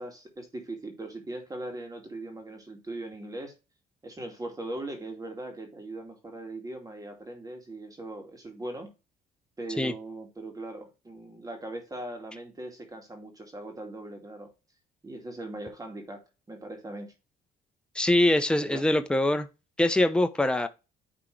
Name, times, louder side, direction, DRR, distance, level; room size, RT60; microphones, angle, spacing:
voice 1, 0.0-3.5 4.0-8.9 9.6-14.5 15.0-16.2 16.5-17.1 18.6-18.8, right 2 dB, 20° right, 2.3 m, -40 dB
voice 2, 17.9-19.5 19.8-20.7, left 1 dB, 5° left, 0.8 m, -23 dB
9.9 x 3.7 x 3.3 m
cardioid pair, 110°, 17 cm